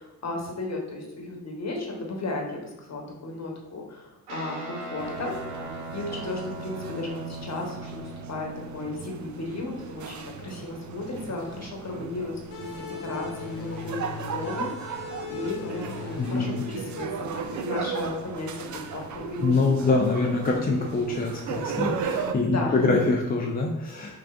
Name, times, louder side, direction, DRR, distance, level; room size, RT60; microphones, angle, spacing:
voice 1, 0.0-19.9 22.2-22.9 24.0-24.2, left 2 dB, 35° left, 0 dB, 1.1 m, -35 dB
Guitar, 4.3-11.9, right 2 dB, 90° right, 0.8 m, -40 dB
sound 1, 5.0-22.3, right 6 dB, 40° right, 0.5 m, -36 dB
sound 2, 12.5-17.8, left 9 dB, 70° left, 0.8 m, -40 dB
voice 2, 16.2-16.5 19.4-24.2, left 3 dB, 20° left, -1 dB, 0.5 m, -24 dB
5.8 x 2.4 x 2.4 m, 1.0 s
hypercardioid pair, 40°, 46 cm